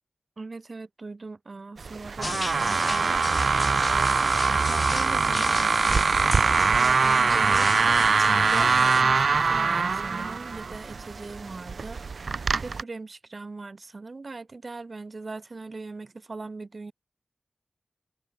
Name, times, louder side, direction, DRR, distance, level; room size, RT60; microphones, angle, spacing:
voice 1, 0.4-3.5 3.9-16.9, right 3 dB, 50° right, 2.3 m, -40 dB
sound 1, 1.8-12.8, right 4 dB, 75° right, 0.4 m, -23 dB
sound 2, 2.2-9.0, left 2 dB, 35° left, 1.2 m, -35 dB
open air
wide cardioid pair, 85°, 0 cm